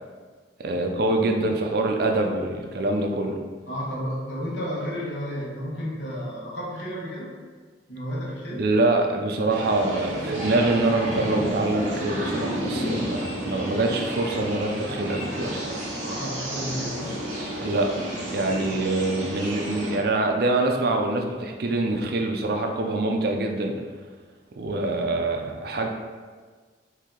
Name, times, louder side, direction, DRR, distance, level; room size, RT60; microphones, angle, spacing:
voice 1, 0.6-3.4 8.6-15.8 17.6-23.8 24.5-25.9, right 2 dB, 60° right, 3 dB, 0.5 m, -25 dB
voice 2, 3.7-7.3 7.9-8.6 15.9-17.2 18.5-18.7, equal, 85° left, -4 dB, 1.2 m, -32 dB
sound 1, 9.5-20.0, right 1 dB, 45° right, 1.0 m, -31 dB
4.7 x 2.7 x 3.7 m, 1.5 s
head